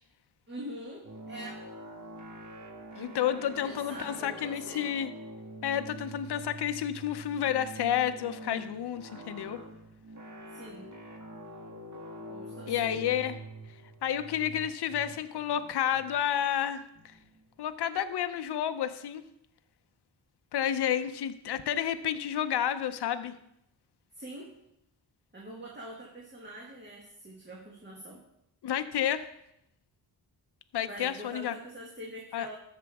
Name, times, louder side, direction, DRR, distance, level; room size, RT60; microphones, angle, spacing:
voice 1, 0.5-1.6 3.6-4.9 10.5-10.9 12.3-13.0 24.1-24.5 25.3-28.2 30.9-32.6, right 1 dB, 25° right, -2 dB, 1.7 m, -44 dB
sound 1, 1.0-17.6, right 1 dB, 45° right, 1.7 m, -46 dB
voice 2, 3.0-5.1 5.6-9.6 12.7-13.3 14.0-16.8 17.6-19.2 20.5-23.3 28.6-29.2 30.7-31.5 32.3-32.5, left 10 dB, 75° left, 10 dB, 0.7 m, -30 dB
13.5 x 6.7 x 3.5 m, 0.79 s
wide cardioid pair, 100°, 40 cm